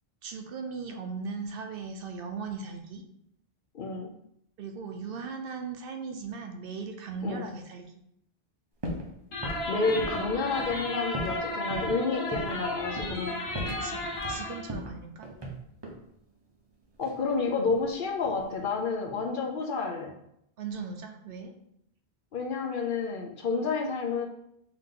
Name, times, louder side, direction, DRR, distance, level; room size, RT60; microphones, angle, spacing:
voice 1, 0.2-3.0 4.6-8.0 13.7-15.3 20.6-21.5, right 4 dB, 65° right, 5 dB, 0.7 m, -38 dB
voice 2, 3.7-4.1 7.2-7.5 9.7-13.4 17.0-20.1 22.3-24.2, left 4 dB, 60° left, 1 dB, 0.7 m, -30 dB
sound 1, 8.8-9.1 9.4-11.4 11.7-11.9 12.3-12.6 13.0-13.3 13.5-14.4 14.7-16.0 17.0-17.9 18.2-18.7, equal, 30° right, 0.6 m, -37 dB
sound 2, 9.3-14.7, left 1 dB, 80° left, 1.1 m, -34 dB
3.6 x 2.9 x 3.7 m, 0.75 s
omnidirectional pair, 1.1 m